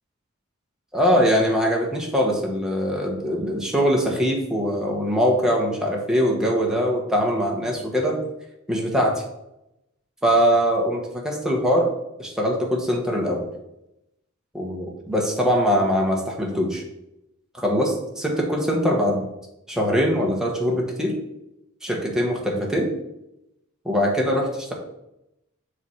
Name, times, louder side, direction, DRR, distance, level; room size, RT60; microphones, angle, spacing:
voice 1, 0.9-8.2 8.7-9.2 10.2-11.9 12.2-13.5 14.5-16.8 17.5-19.3 19.7-21.2 21.8-22.9 23.8-24.7, equal, 5° right, -1 dB, 1.1 m, -22 dB
7.0 x 3.3 x 5.6 m, 0.87 s
head